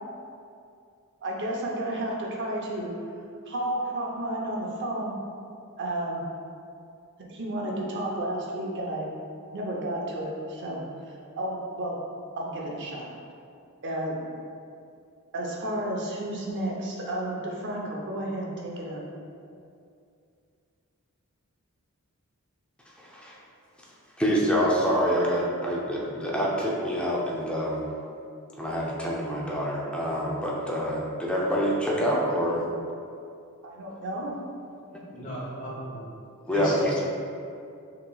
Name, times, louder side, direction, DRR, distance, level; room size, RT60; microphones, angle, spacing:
voice 1, 1.2-2.9 3.5-5.2 5.8-6.2 7.3-9.1 9.5-10.8 11.4-12.0 12.4-13.1 13.8-14.2 15.3-19.0 33.6-34.4, right 1 dB, 55° right, -2 dB, 0.7 m, -32 dB
voice 2, 24.2-27.8 28.6-32.6 36.5-37.0, equal, 5° left, -5 dB, 0.5 m, -26 dB
voice 3, 35.1-36.0 36.4-37.0, equal, 35° left, -8 dB, 1.3 m, -35 dB
5.7 x 3.0 x 2.3 m, 2.5 s
head